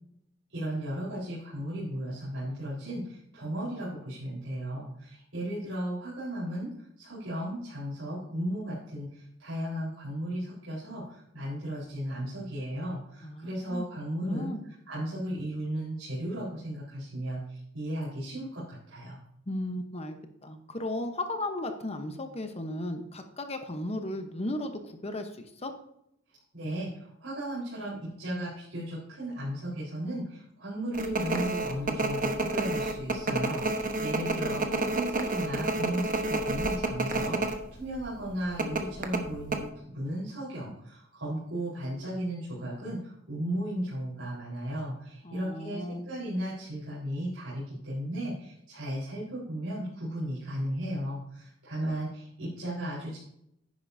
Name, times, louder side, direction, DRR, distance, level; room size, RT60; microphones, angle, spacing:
voice 1, 0.5-6.7 7.0-14.5 14.9-19.2 26.5-53.2, right 1 dB, 85° right, -9 dB, 4.3 m, -35 dB
voice 2, 13.2-13.9 14.2-14.6 19.5-20.2 20.4-25.7 45.2-46.0, left 1 dB, 30° left, 6 dB, 1.0 m, -35 dB
sound 1, 30.9-37.6 37.9-38.0 38.6-39.6, right 2 dB, 45° right, 1.2 m, -29 dB
10.5 x 9.6 x 2.7 m, 0.76 s
head